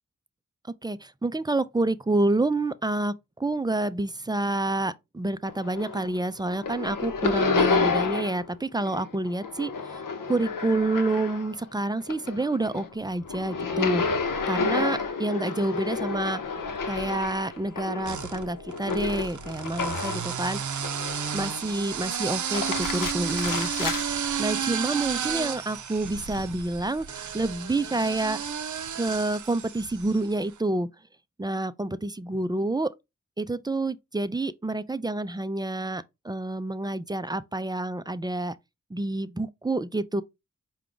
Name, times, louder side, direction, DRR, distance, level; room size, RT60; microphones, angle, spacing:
voice 1, 0.8-14.0 14.5-16.4 16.9-20.6 21.3-28.4 28.9-30.9 31.4-32.9 33.4-38.5 38.9-40.2, right 2 dB, 15° right, 0.4 m, -28 dB
sound 1, 5.5-6.2 6.5-8.5 8.8-11.6 12.0-20.3 20.8-21.5 22.3-24.0, left 4 dB, 85° left, 0.8 m, -30 dB
sound 2, 16.6-17.3 18.0-30.3, right 7 dB, 70° right, 0.5 m, -32 dB
4.8 x 2.3 x 3.8 m
cardioid pair, 50°, 31 cm